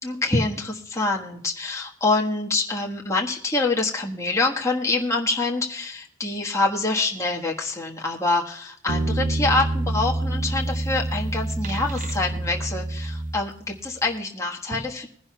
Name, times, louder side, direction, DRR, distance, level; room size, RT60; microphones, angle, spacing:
voice 1, 0.0-15.1, left 3 dB, 15° left, -2 dB, 1.4 m, -25 dB
sound 1, 8.9-13.8, right 2 dB, 40° right, 0.6 m, -27 dB
21.5 x 11.0 x 2.3 m, 0.64 s
head